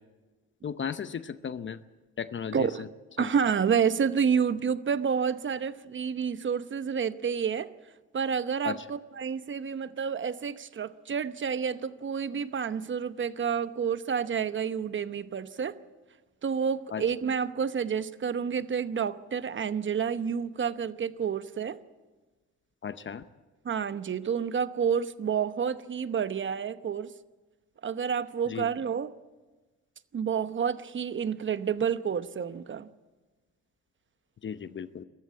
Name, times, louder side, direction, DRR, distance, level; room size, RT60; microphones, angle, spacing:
voice 1, 0.6-1.8 2.2-2.9 3.2-3.3 8.6-8.8 16.9-17.0 22.8-23.3 28.5-28.7 34.4-35.0, left 7 dB, 40° left, 13 dB, 0.8 m, -35 dB
voice 2, 2.5-2.8 3.2-7.7 8.1-15.7 16.4-21.8 23.6-27.1 27.8-29.1 30.1-32.9, right 7 dB, 40° right, 13 dB, 0.9 m, -29 dB
22.5 x 14.0 x 8.5 m, 1.3 s
cardioid pair, 90°, 30 cm